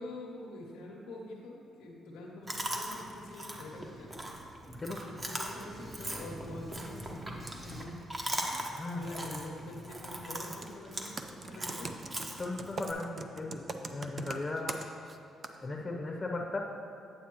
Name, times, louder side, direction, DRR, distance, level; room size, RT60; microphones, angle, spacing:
voice 1, 0.0-4.2 5.0-8.0 8.9-12.0, left 1 dB, 90° left, -3 dB, 0.9 m, -45 dB
Chewing mastication, 2.5-12.9, right 1 dB, 25° right, 0.9 m, -40 dB
Computer keyboard, 10.5-10.7 11.2-15.2 15.4-15.6, right 3 dB, 40° right, 0.5 m, -40 dB
voice 2, 12.4-14.8 15.6-16.6, left 2 dB, 25° left, 0 dB, 0.7 m, -37 dB
8.6 x 8.2 x 3.0 m, 2.8 s
cardioid pair, 90°, 0 cm